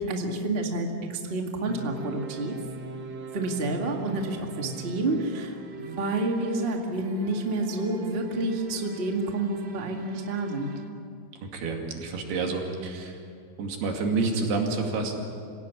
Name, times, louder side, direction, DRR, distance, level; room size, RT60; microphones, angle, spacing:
voice 1, 0.0-2.5 3.3-10.7, right 2 dB, 25° right, 2 dB, 1.3 m, -29 dB
sound 1, 1.6-10.9, right 3 dB, 50° right, 1.3 m, -42 dB
voice 2, 11.4-13.2 13.6-15.1, right 3 dB, 85° right, 2 dB, 4.5 m, -28 dB
27.0 x 17.0 x 8.4 m, 2.4 s
omnidirectional pair, 4.4 m